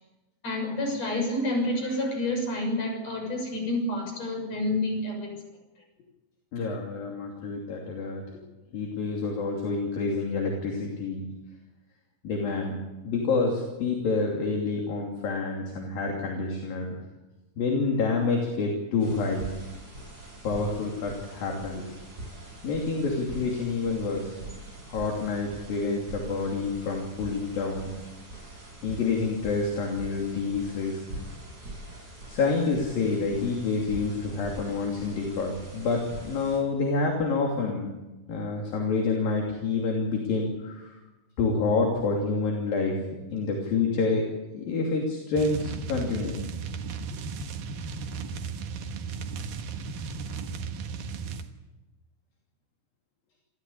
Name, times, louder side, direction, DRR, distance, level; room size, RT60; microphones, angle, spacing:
voice 1, 0.4-5.4, left 1 dB, 40° left, 2 dB, 7.8 m, -29 dB
voice 2, 6.5-8.2 8.7-11.2 12.2-12.7 13.0-17.0 17.6-19.5 20.4-21.8 22.6-24.4 24.9-27.9 28.8-31.0 32.3-37.9 38.3-41.0 41.4-43.0 43.3-44.2 44.5-46.4, left 4 dB, 65° left, 0 dB, 4.5 m, -28 dB
sound 1, 19.0-36.6, right 2 dB, 20° right, 7.7 m, -43 dB
sound 2, 45.4-51.5, right 5 dB, 65° right, 2.9 m, -35 dB
28.5 x 14.5 x 8.6 m, 1.1 s
omnidirectional pair, 4.6 m